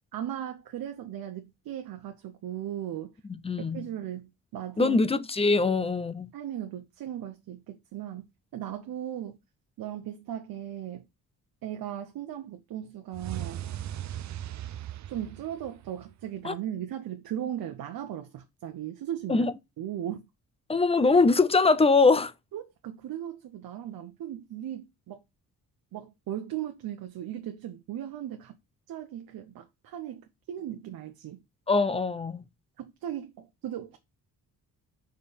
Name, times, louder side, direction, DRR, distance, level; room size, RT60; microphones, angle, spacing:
voice 1, 0.1-3.1 3.6-5.0 6.3-9.4 9.8-11.1 11.6-13.6 15.1-19.5 19.8-20.3 22.5-25.2 25.9-28.6 28.9-31.4 32.8-34.0, right 11 dB, 75° right, 0.9 m, -37 dB
voice 2, 3.4-3.8 4.8-6.3 16.4-16.5 19.3-19.5 20.7-22.3 31.7-32.4, left 3 dB, 15° left, 0.5 m, -22 dB
sound 1, 13.1-16.3, right 11 dB, 50° right, 0.6 m, -38 dB
5.1 x 4.5 x 5.2 m
cardioid pair, 140°, 36 cm